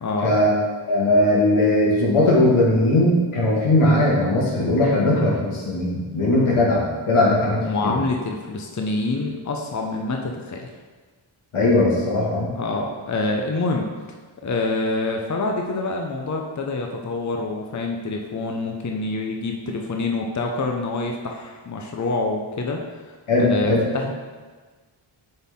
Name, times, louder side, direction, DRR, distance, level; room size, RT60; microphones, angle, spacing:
voice 1, 0.0-0.3 7.5-10.7 12.6-13.9 14.4-22.8 23.0-24.1, left 3 dB, 35° left, 1 dB, 0.8 m, -26 dB
voice 2, 0.9-8.0 11.5-12.5 23.3-23.8, left 1 dB, 85° left, -5 dB, 2.0 m, -19 dB
7.8 x 4.3 x 3.7 m, 1.4 s
cardioid pair, 70°, 48 cm